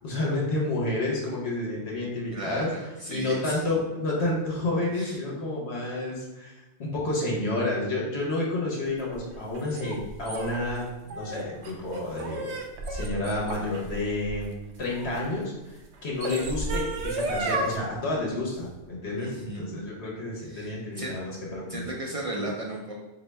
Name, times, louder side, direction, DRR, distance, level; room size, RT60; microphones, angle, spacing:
voice 1, 0.0-2.7 3.1-6.5 6.8-12.5 12.9-14.5 14.8-21.9, left 2 dB, 80° left, -3 dB, 1.2 m, -30 dB
voice 2, 2.3-3.6 4.9-5.2 19.2-19.8 20.4-21.2 21.7-23.0, right 1 dB, 50° right, -2 dB, 0.4 m, -36 dB
sound 1, 9.0-15.2 15.9-17.8, right 2 dB, 90° right, 0.9 m, -33 dB
4.0 x 2.8 x 3.3 m, 1.1 s
omnidirectional pair, 1.1 m